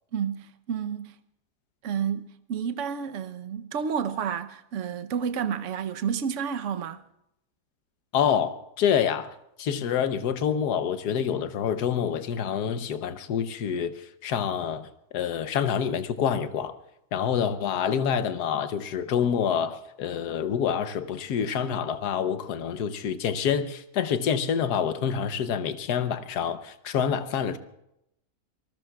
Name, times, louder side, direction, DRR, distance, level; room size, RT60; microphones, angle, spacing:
voice 1, 0.1-1.1 1.8-7.0, right 7 dB, 55° right, 1.1 m, -30 dB
voice 2, 8.1-9.3 9.6-14.9 15.1-16.7 17.1-27.6, left 8 dB, 80° left, 1.4 m, -27 dB
26.0 x 20.0 x 2.4 m
omnidirectional pair, 1.7 m